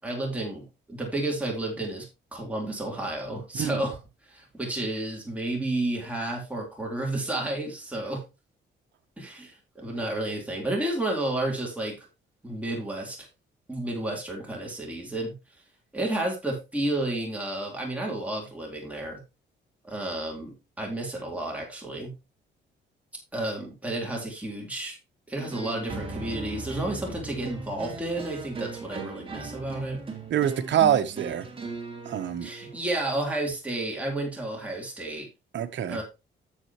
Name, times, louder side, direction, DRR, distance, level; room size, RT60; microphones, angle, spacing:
voice 1, 0.0-2.1 2.3-4.0 4.3-8.2 9.2-12.1 12.4-13.3 13.7-15.3 15.9-19.2 19.8-22.1 23.3-25.0 25.3-30.0 32.4-35.3 35.9-36.0, right 1 dB, 5° right, 3.8 m, -31 dB
sound 1, 25.4-32.8, right 3 dB, 25° right, 2.7 m, -38 dB
voice 2, 30.3-31.4 32.0-32.5 35.5-36.0, right 10 dB, 65° right, 1.2 m, -25 dB
9.9 x 7.6 x 3.1 m
cardioid pair, 90°, 20 cm